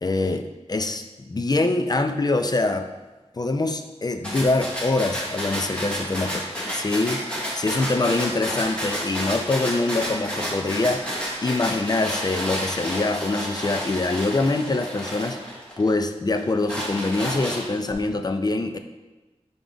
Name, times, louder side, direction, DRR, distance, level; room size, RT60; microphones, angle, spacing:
voice 1, 0.0-2.9 3.3-6.4 6.7-11.1 11.4-15.4 15.8-18.8, left 2 dB, 35° left, 7 dB, 0.5 m, -24 dB
sound 1, 4.2-15.9 16.4-17.9, equal, 10° left, 1.8 m, -30 dB
5.2 x 4.6 x 3.9 m, 1.2 s
wide cardioid pair, 65°, 12 cm